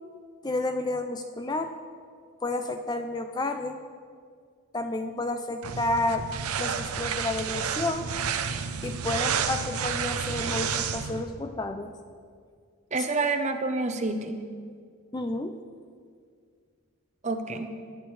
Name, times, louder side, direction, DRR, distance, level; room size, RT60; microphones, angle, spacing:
voice 1, 0.4-1.7 2.4-3.8 4.7-6.3 6.6-8.1 8.8-11.9 15.1-15.6, left 2 dB, 20° left, 7 dB, 0.4 m, -30 dB
sound 1, 5.6-11.2, right 6 dB, 85° right, 0.7 m, -30 dB
voice 2, 12.9-14.4 17.2-17.8, right 3 dB, 30° right, 7 dB, 0.7 m, -28 dB
19.5 x 11.0 x 3.2 m, 2.1 s
head